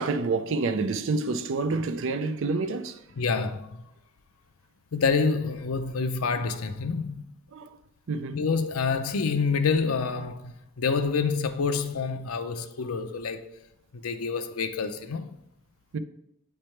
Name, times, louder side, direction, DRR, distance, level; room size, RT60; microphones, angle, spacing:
voice 1, 0.0-3.0 7.5-7.8 8.1-8.4 15.9-16.0, right 3 dB, 60° right, 0.4 m, -28 dB
voice 2, 3.2-3.8 4.9-7.3 8.3-13.4 13.9-15.4, left 5 dB, 80° left, 0.6 m, -27 dB
8.6 x 3.4 x 4.4 m
head